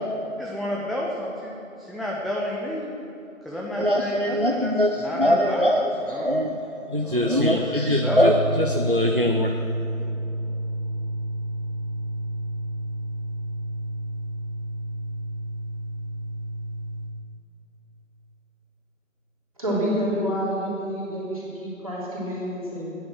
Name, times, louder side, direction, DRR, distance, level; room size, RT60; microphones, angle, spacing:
voice 1, 0.4-2.9 3.4-5.7 6.0-6.4 7.0-7.4 7.7-8.2, left 1 dB, ahead, -4 dB, 0.6 m, -31 dB
voice 2, 3.8-6.6 6.8-9.6, equal, 40° right, 3 dB, 0.6 m, -22 dB
sound 1, 7.7-17.1, right 1 dB, 30° left, 2.7 m, -30 dB
voice 3, 19.6-23.0, equal, 25° right, -8 dB, 3.3 m, -28 dB
15.0 x 10.5 x 7.5 m, 2.8 s
figure-of-eight pair, 175°, 41 cm